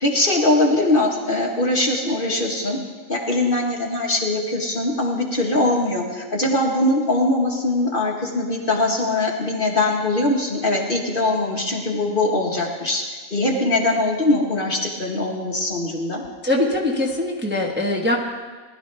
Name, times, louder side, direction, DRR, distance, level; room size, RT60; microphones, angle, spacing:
voice 1, 0.0-2.8 3.1-13.0 13.3-16.2, left 2 dB, 35° left, -1 dB, 1.5 m, -21 dB
voice 2, 16.4-18.2, left 2 dB, 10° right, -1 dB, 1.1 m, -22 dB
19.5 x 12.0 x 3.3 m, 1.4 s
omnidirectional pair, 1.5 m